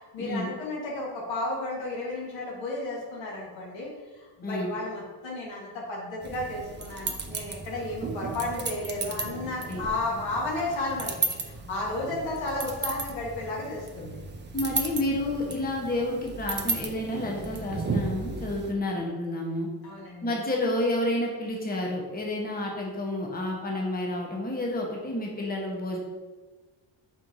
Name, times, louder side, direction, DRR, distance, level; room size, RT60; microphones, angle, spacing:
voice 1, 0.1-3.9 4.2-11.1 11.4-14.2 19.8-20.4, left 2 dB, 75° left, -3 dB, 1.5 m, -33 dB
voice 2, 4.4-4.7 9.7-9.8 14.5-19.7 20.2-26.0, left 1 dB, 20° left, -1 dB, 1.0 m, -30 dB
sound 1, 6.2-18.7, right 3 dB, 25° right, 0.6 m, -35 dB
4.5 x 4.4 x 2.7 m, 1.3 s
supercardioid pair, 70°, 45 cm